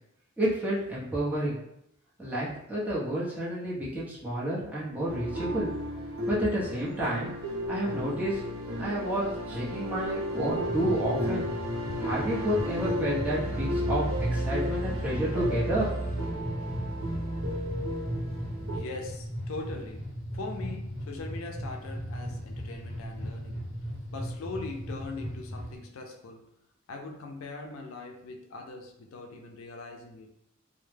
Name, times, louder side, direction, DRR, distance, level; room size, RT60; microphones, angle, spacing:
voice 1, 0.4-1.6 2.2-5.7 6.3-7.3 7.7-8.4 8.7-11.5 12.0-14.0 14.3-15.9, right 1 dB, 10° right, -8 dB, 0.7 m, -30 dB
sound 1, 5.1-18.8, equal, 85° right, 0.7 m, -33 dB
sound 2, 10.6-25.8, equal, 40° right, 1.0 m, -37 dB
voice 2, 18.7-23.7 24.1-26.5 26.9-30.3, left 3 dB, 75° left, 2 dB, 0.4 m, -41 dB
2.1 x 2.0 x 3.2 m, 0.78 s
head